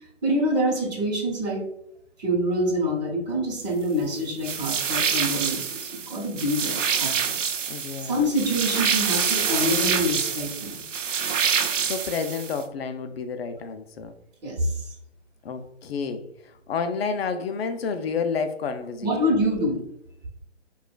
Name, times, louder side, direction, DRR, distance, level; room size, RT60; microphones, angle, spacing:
voice 1, 0.2-1.7 2.2-7.4 8.0-10.8 14.4-14.9 19.0-19.8, equal, 35° right, -2 dB, 1.1 m, -26 dB
sound 1, 4.4-12.6, right 7 dB, 85° right, 0.6 m, -26 dB
voice 2, 7.7-8.2 11.9-14.1 15.4-16.2 16.7-19.4, left 5 dB, 55° left, 8 dB, 0.5 m, -30 dB
4.8 x 2.4 x 2.2 m, 0.77 s
hypercardioid pair, 150°, 37 cm